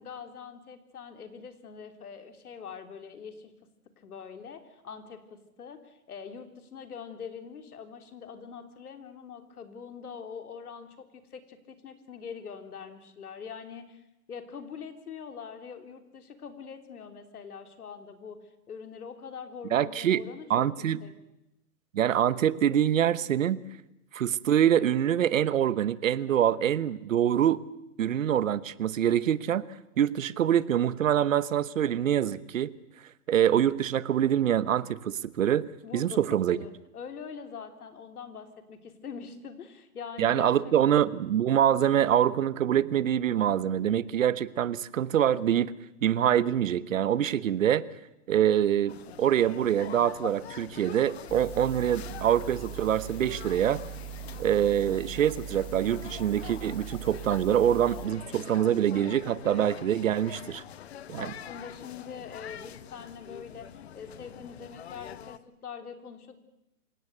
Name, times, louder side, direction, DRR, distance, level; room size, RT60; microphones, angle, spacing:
voice 1, 0.0-3.5 4.0-14.0 14.3-18.4 18.7-20.7 21.0-21.1 35.8-41.2 61.1-66.4, left 6 dB, 70° left, 7 dB, 3.5 m, -43 dB
voice 2, 19.7-20.2 20.5-21.0 21.9-23.6 24.1-27.6 28.0-29.6 30.0-32.7 33.3-35.7 35.9-36.6 40.2-45.7 46.0-47.8 48.3-53.8 54.4-60.6 61.1-61.3, right 10 dB, 55° right, 18 dB, 1.1 m, -25 dB
sound 1, 48.9-65.4, left 10 dB, 45° left, 0.9 m, -45 dB
sound 2, 51.3-58.1, right 7 dB, 10° left, 1.9 m, -41 dB
27.0 x 17.5 x 8.0 m, 0.90 s
hypercardioid pair, 160°, 46 cm